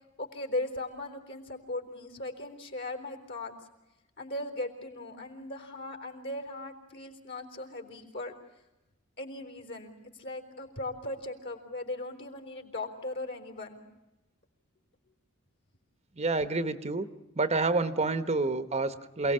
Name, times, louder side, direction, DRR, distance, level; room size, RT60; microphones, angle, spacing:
voice 1, 0.2-3.5 4.2-8.3 9.2-13.8, left 2 dB, 55° left, 5 dB, 4.0 m, -38 dB
voice 2, 16.2-17.1 17.3-19.3, right 3 dB, 30° right, 11 dB, 1.0 m, -28 dB
28.0 x 18.5 x 8.7 m, 1.0 s
head